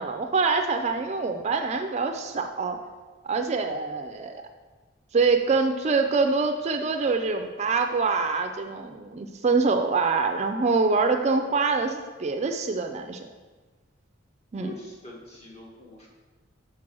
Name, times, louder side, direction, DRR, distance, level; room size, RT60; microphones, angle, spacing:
voice 1, 0.0-2.8 3.2-4.4 5.1-13.3 14.5-14.8, right 4 dB, 35° right, 5 dB, 0.4 m, -25 dB
voice 2, 14.5-16.1, left 2 dB, 35° left, -3 dB, 1.6 m, -43 dB
6.1 x 4.6 x 6.0 m, 1.3 s
head